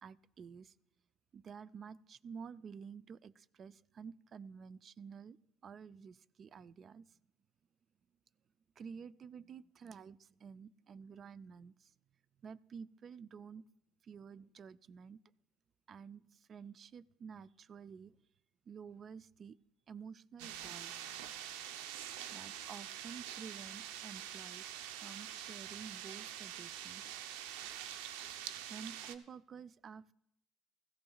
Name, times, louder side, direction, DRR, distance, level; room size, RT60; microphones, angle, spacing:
voice 1, 0.0-0.7 1.3-5.4 5.6-7.2 8.8-11.9 12.4-13.6 14.0-15.2 15.9-18.2 18.7-19.6 19.9-21.1 22.3-24.7 25.0-27.2 28.7-30.1, right 6 dB, 40° right, 18 dB, 0.4 m, -51 dB
sound 1, 20.4-29.1, right 10 dB, 85° right, 0.6 m, -45 dB
17.0 x 15.0 x 2.4 m, 0.80 s
supercardioid pair, 95°, 0 cm